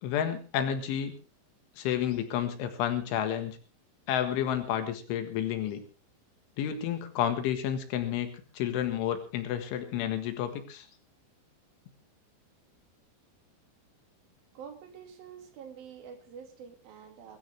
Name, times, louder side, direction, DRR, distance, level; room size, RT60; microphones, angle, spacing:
voice 1, 0.0-1.1 1.8-3.6 4.1-5.8 6.6-10.9, left 10 dB, 85° left, 7 dB, 4.1 m, -30 dB
voice 2, 14.5-17.4, right 7 dB, 55° right, 5 dB, 3.7 m, -47 dB
22.0 x 13.0 x 3.5 m, 0.35 s
omnidirectional pair, 5.4 m